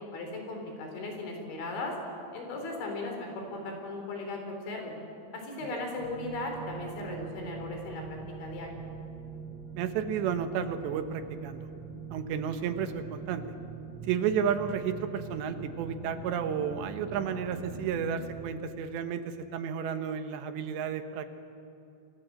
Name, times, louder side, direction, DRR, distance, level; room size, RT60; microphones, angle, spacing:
voice 1, 0.0-2.0 2.3-4.9 5.3-8.7, left 2 dB, 75° left, 3 dB, 6.5 m, -37 dB
sound 1, 6.0-18.2, right 6 dB, 25° left, 8.8 m, -43 dB
voice 2, 9.8-11.7 12.1-13.4 14.1-21.3, right 7 dB, 75° right, 8 dB, 3.2 m, -32 dB
29.0 x 23.0 x 7.7 m, 2.6 s
omnidirectional pair, 5.3 m